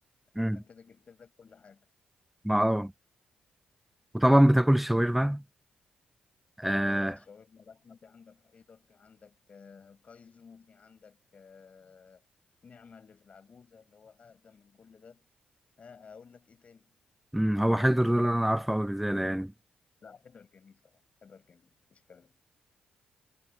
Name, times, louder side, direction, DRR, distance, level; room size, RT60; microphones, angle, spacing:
voice 1, 0.3-1.9 6.7-12.2 12.6-15.3 15.8-17.0 20.0-22.4, left 5 dB, 50° left, 5.6 m, -54 dB
voice 2, 2.4-2.9 4.1-5.4 6.6-7.1 17.3-19.5, equal, 5° right, 0.4 m, -24 dB
supercardioid pair, 60°, 3 cm